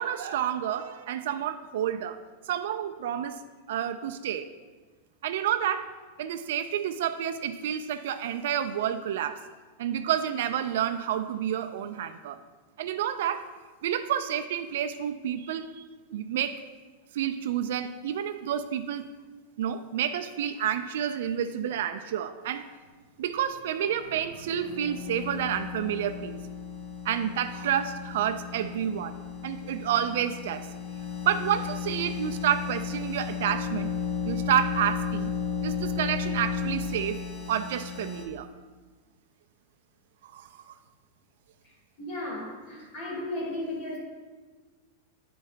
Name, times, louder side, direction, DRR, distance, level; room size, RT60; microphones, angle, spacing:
voice 1, 0.0-2.2 2.5-3.4 3.7-4.5 5.2-5.9 6.2-9.4 9.8-12.4 12.8-13.5 13.8-15.8 16.1-16.6 17.1-19.1 19.6-22.7 23.2-26.4 27.0-29.2 29.4-30.7 31.3-33.9 34.2-35.3 35.6-37.2 37.5-38.5 40.2-40.7, right 10 dB, 70° right, 8 dB, 0.3 m, -29 dB
sound 1, 24.4-38.2, left 7 dB, 90° left, 1.8 m, -34 dB
voice 2, 42.0-44.0, left 1 dB, 40° left, -3 dB, 2.3 m, -35 dB
10.0 x 4.6 x 3.4 m, 1.4 s
supercardioid pair, 160°, 0 cm